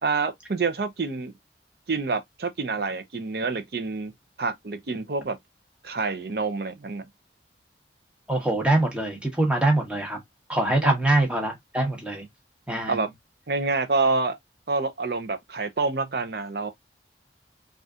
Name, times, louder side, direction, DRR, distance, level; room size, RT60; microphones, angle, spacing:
voice 1, 0.0-1.3 1.9-4.1 4.4-5.4 5.8-7.1 10.8-11.0 12.9-13.1 13.5-14.4 14.7-16.7, right 3 dB, 60° right, 0.6 m, -27 dB
voice 2, 8.3-10.2 10.5-12.2 12.7-13.0, right 2 dB, 5° right, 1.0 m, -24 dB
4.0 x 2.4 x 2.4 m
head